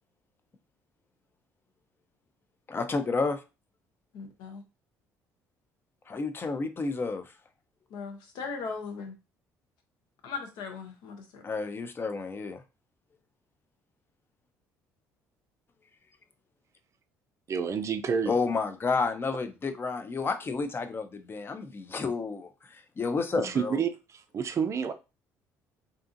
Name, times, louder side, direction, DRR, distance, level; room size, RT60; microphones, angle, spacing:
voice 1, 2.7-3.4 6.1-7.2 11.4-12.6 18.3-23.8, left 4 dB, 30° left, 0.5 m, -30 dB
voice 2, 4.1-4.6 7.9-9.1 10.2-11.4, left 5 dB, 75° left, 0.8 m, -38 dB
voice 3, 17.5-18.3 23.4-23.9 24.3-24.9, right 6 dB, 40° right, 0.4 m, -28 dB
2.7 x 2.4 x 2.5 m
supercardioid pair, 75°, 7 cm